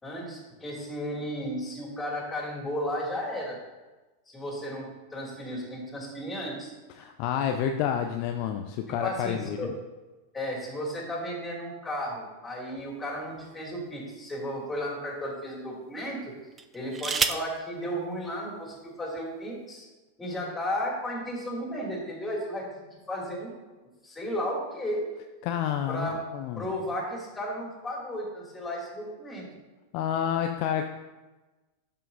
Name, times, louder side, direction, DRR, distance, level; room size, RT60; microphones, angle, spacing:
voice 1, 0.0-3.6 4.3-6.7 8.9-9.7 10.3-16.3 16.7-19.8 20.2-22.7 23.1-23.5 24.0-25.1 25.9-29.5, equal, 10° left, -3 dB, 2.7 m, -34 dB
voice 2, 7.0-9.7 25.4-26.7 29.9-30.8, left 9 dB, 45° left, 5 dB, 0.5 m, -29 dB
sound 1, 12.8-14.0 14.7-14.9 16.5-17.6 18.7-18.8 19.1-19.5, right 5 dB, 20° right, 0.4 m, -32 dB
12.0 x 5.6 x 2.7 m, 1.2 s
figure-of-eight pair, 90°, 0 cm